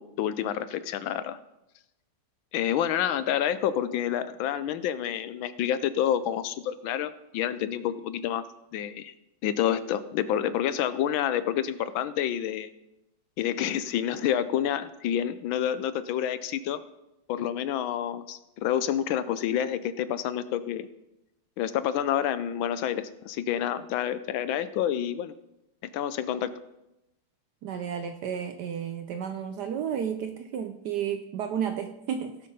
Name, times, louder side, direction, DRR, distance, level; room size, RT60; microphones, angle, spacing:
voice 1, 0.0-1.4 2.5-8.4 8.7-9.1 9.4-12.7 13.4-16.8 17.3-20.9 21.6-25.3 25.9-26.5, left 10 dB, 75° left, 13 dB, 1.3 m, -28 dB
voice 2, 27.6-32.4, right 8 dB, 70° right, 8 dB, 1.0 m, -32 dB
16.5 x 5.9 x 5.4 m, 0.90 s
omnidirectional pair, 2.3 m